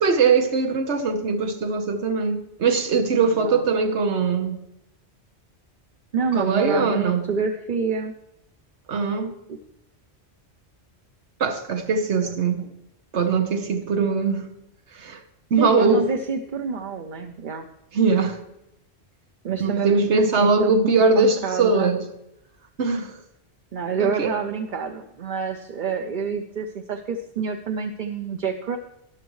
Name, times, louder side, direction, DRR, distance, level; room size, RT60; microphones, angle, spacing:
voice 1, 0.0-4.6 6.3-7.3 8.9-9.4 11.4-12.6 13.1-14.5 14.9-15.2 15.5-16.1 17.9-18.4 19.6-22.0 22.8-23.2 24.0-24.4, right 4 dB, 85° right, 1.4 m, -21 dB
voice 2, 3.3-3.6 6.1-8.1 9.5-9.6 12.2-12.3 12.6-12.7 15.6-17.6 19.4-22.0 23.7-28.8, right 5 dB, 50° right, 0.8 m, -27 dB
13.5 x 11.0 x 3.1 m
omnidirectional pair, 1.1 m